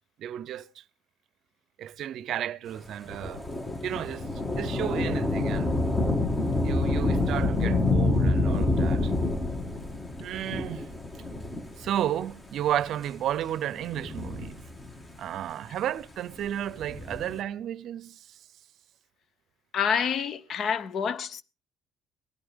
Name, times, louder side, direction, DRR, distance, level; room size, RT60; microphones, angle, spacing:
voice 1, 0.2-0.8 1.8-3.5 3.8-4.3 4.5-5.7 6.6-9.1 10.2-10.9 11.8-14.6 15.2-18.4, right 11 dB, 65° right, 0.6 m, -33 dB
Thunder / Rain, 3.1-12.1 12.8-12.9 13.8-15.1 16.6-17.4, left 2 dB, 25° left, 1.9 m, -27 dB
voice 2, 19.7-21.4, left 7 dB, 55° left, 0.7 m, -28 dB
18.0 x 11.5 x 3.6 m
cardioid pair, 95°, 0 cm